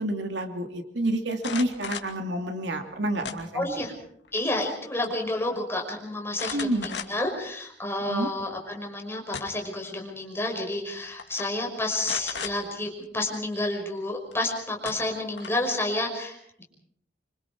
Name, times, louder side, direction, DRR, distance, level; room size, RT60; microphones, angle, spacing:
voice 1, 0.0-3.7 6.5-6.9 8.1-8.3, right 1 dB, 75° right, 5 dB, 2.8 m, -29 dB
sound 1, 1.3-2.2 3.2-3.8 4.2-4.8 5.0-5.1 6.3-7.4 7.9-8.0 9.0-9.7 10.7-10.9 11.2-11.5 12.0-12.6 14.3-14.4 14.8-15.7, left 6 dB, 70° left, 2.6 m, -36 dB
voice 2, 3.5-3.9 4.3-16.6, left 1 dB, 15° left, 1 dB, 5.5 m, -30 dB
26.0 x 25.5 x 4.7 m, 0.69 s
head